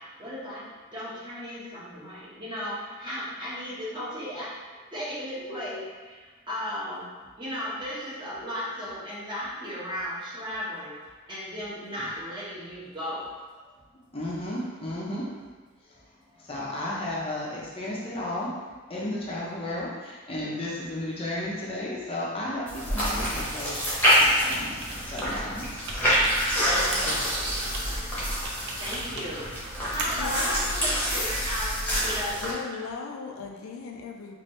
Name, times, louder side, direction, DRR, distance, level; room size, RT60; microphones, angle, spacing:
voice 1, 0.2-0.6 0.9-4.5 4.9-5.8 6.1-6.2 6.5-7.1 7.4-10.9 11.3-13.3 26.9-27.2 27.5-28.0 28.8-29.5 29.9-32.5, equal, 20° right, -9 dB, 1.2 m, -35 dB
voice 2, 14.1-15.2 15.8-15.9 16.4-18.5 18.9-25.6 26.1-26.2 26.5-26.8 29.9-30.0 30.5-30.6, left 1 dB, 25° left, -5 dB, 0.6 m, -34 dB
sound 1, 22.7-32.5, equal, 10° left, 1.0 m, -26 dB
Computer keyboard, 24.1-30.8, right 2 dB, 55° right, 0.5 m, -40 dB
voice 3, 26.6-27.3 30.2-31.0 32.4-34.4, left 4 dB, 70° left, 2 dB, 0.4 m, -38 dB
4.3 x 2.6 x 3.1 m, 1.4 s
head